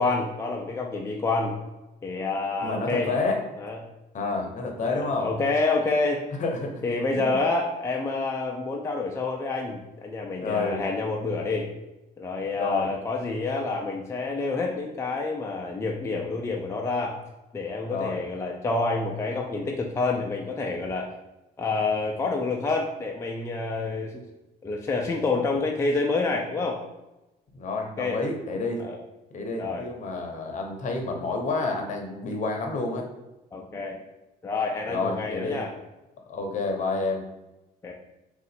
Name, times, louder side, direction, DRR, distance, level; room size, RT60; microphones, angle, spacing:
voice 1, 0.0-1.5 2.0-3.1 3.6-3.8 4.8-6.3 6.8-11.7 12.2-17.2 17.5-21.1 21.6-24.2 24.6-26.8 28.0-28.2 28.8-29.0 29.6-29.8 33.5-34.0 34.4-35.7 37.8-37.9, left 3 dB, 15° left, 0 dB, 0.4 m, -28 dB
voice 2, 2.6-3.4 4.1-5.3 6.4-6.8 7.1-7.4 10.4-10.8 12.6-12.9 17.9-18.2 27.5-28.8 29.3-33.1 34.9-35.6 36.3-37.2, left 3 dB, 45° left, 3 dB, 0.8 m, -29 dB
3.8 x 2.4 x 4.2 m, 1.0 s
cardioid pair, 110°, 17 cm